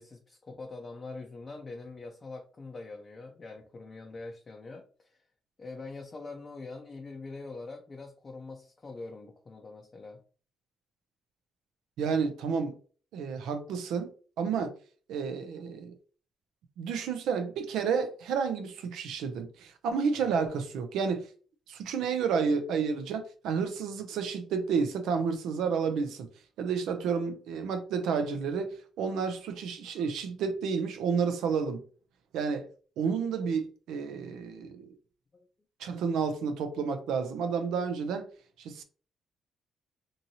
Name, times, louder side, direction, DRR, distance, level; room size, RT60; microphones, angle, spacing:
voice 1, 0.0-5.2 5.6-10.2 20.2-20.4 35.3-35.5, left 3 dB, 35° left, 0.5 m, -44 dB
voice 2, 12.0-12.8 13.1-14.1 14.4-14.7 15.1-15.9 16.8-21.3 21.7-26.3 26.6-31.8 32.3-32.7 33.0-34.9 35.8-38.3 38.6-38.8, right 6 dB, 85° right, 0.5 m, -30 dB
2.7 x 2.7 x 2.7 m
cardioid pair, 90°, 0 cm